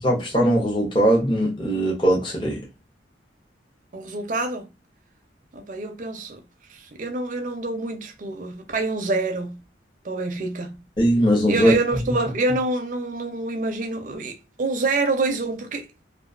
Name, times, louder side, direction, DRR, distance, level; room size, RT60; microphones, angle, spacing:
voice 1, 0.0-2.6 11.0-11.8, right 1 dB, 25° left, 0.7 m, -20 dB
voice 2, 3.9-4.7 5.5-6.4 6.7-9.6 10.0-10.8 11.5-16.0, right 2 dB, 45° right, 0.4 m, -27 dB
2.3 x 2.3 x 2.3 m
head